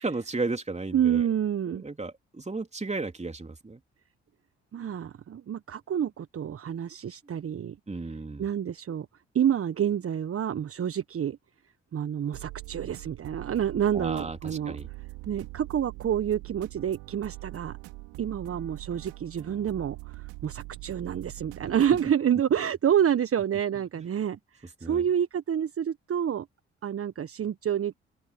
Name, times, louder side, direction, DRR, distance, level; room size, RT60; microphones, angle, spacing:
voice 1, 0.0-1.3 1.7-3.8 7.9-8.4 13.9-14.9 24.0-24.1 24.8-25.0, right 3 dB, 20° right, 3.6 m, -34 dB
voice 2, 0.9-1.8 4.7-7.8 8.4-9.1 9.3-11.4 11.9-14.8 15.3-17.8 18.2-26.5 26.8-27.9, right 9 dB, 45° right, 1.4 m, -28 dB
sound 1, 12.3-22.1, right 24 dB, 75° right, 5.1 m, -43 dB
open air
figure-of-eight pair, 40°, 31 cm